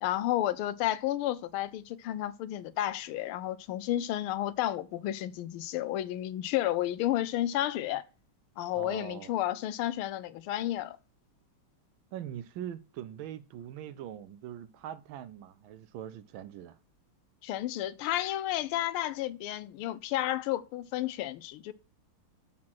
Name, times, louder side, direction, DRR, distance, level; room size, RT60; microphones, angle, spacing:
voice 1, 0.0-8.0 8.6-11.0 17.4-21.7, left 13 dB, 80° left, 1.4 m, -31 dB
voice 2, 8.8-9.3 12.1-16.8, right 10 dB, 75° right, 1.2 m, -42 dB
7.4 x 4.3 x 5.9 m
omnidirectional pair, 2.4 m